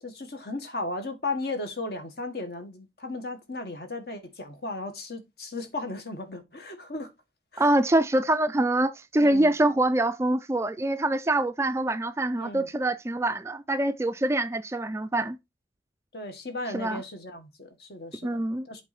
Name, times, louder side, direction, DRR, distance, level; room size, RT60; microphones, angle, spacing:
voice 1, 0.0-7.1 7.5-7.7 9.2-9.5 12.4-12.7 16.1-18.8, left 2 dB, 60° left, 1.6 m, -36 dB
voice 2, 7.6-15.4 16.7-17.0 18.2-18.7, right 1 dB, 15° right, 0.3 m, -25 dB
8.1 x 3.9 x 4.2 m
head